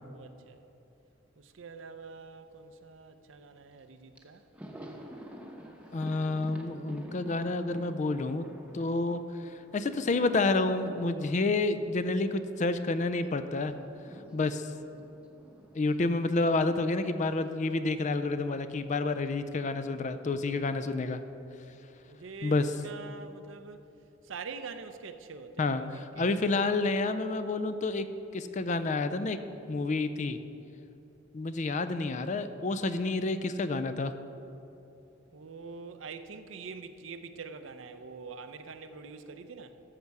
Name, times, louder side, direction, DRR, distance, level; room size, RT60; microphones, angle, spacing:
voice 1, 0.0-0.7 1.4-4.4 21.7-23.8 24.2-26.3 35.3-39.8, right 4 dB, 70° right, 0.6 m, -45 dB
Thunder, 3.8-3.9 4.2-13.0 13.2-17.6 17.8-18.0 19.1-19.8, equal, 5° right, 0.9 m, -49 dB
voice 2, 5.9-8.5 8.7-13.7 14.3-14.7 15.7-21.2 22.4-22.7 25.6-25.8 26.2-28.1 28.3-29.4 29.7-30.4 31.3-34.1, left 3 dB, 35° left, 0.4 m, -29 dB
13.5 x 6.6 x 4.7 m
head